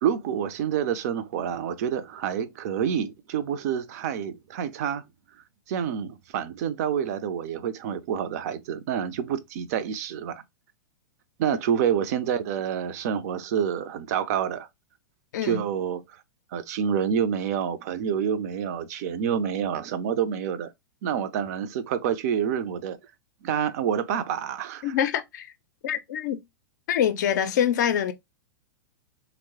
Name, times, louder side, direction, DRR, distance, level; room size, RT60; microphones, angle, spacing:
voice 1, 0.0-5.0 5.7-10.4 11.4-14.7 15.4-16.0 16.5-20.7 21.0-23.0 23.4-24.9, right 8 dB, 45° right, 0.4 m, -28 dB
voice 2, 24.8-25.5 25.8-26.4 26.9-28.1, left 9 dB, 55° left, 0.4 m, -25 dB
3.0 x 2.0 x 2.7 m
figure-of-eight pair, 100°, 11 cm